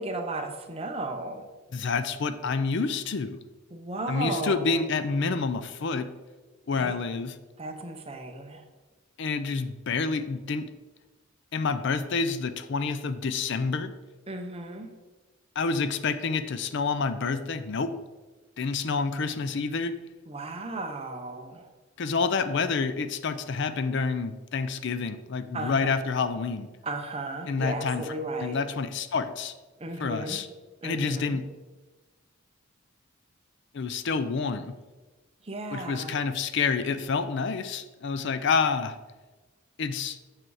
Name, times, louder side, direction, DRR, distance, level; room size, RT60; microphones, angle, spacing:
voice 1, 0.0-1.5 3.7-4.9 6.8-7.0 7.6-8.6 14.3-14.9 20.3-21.7 25.5-25.9 26.8-28.6 29.8-30.4 30.8-31.4 35.4-36.2, right 2 dB, 30° right, 5 dB, 0.8 m, -35 dB
voice 2, 1.7-3.4 4.1-6.1 6.7-7.4 9.2-10.7 11.5-13.9 15.6-17.9 18.6-19.9 22.0-26.7 27.5-28.1 28.4-29.5 30.0-30.5 30.8-31.4 33.7-34.7 35.7-39.0 39.8-40.2, left 4 dB, 60° left, 11 dB, 0.5 m, -28 dB
7.6 x 6.0 x 4.8 m, 1.2 s
head